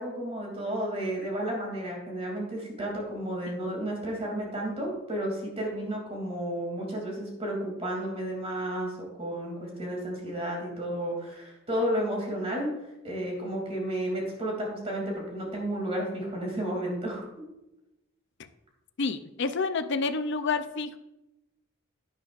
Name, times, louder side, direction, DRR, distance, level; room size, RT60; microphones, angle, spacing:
voice 1, 0.0-12.7 13.0-17.3, right 1 dB, 30° right, -1 dB, 2.7 m, -32 dB
voice 2, 19.0-21.0, left 4 dB, 55° left, 10 dB, 0.5 m, -29 dB
11.5 x 10.0 x 2.5 m, 0.92 s
head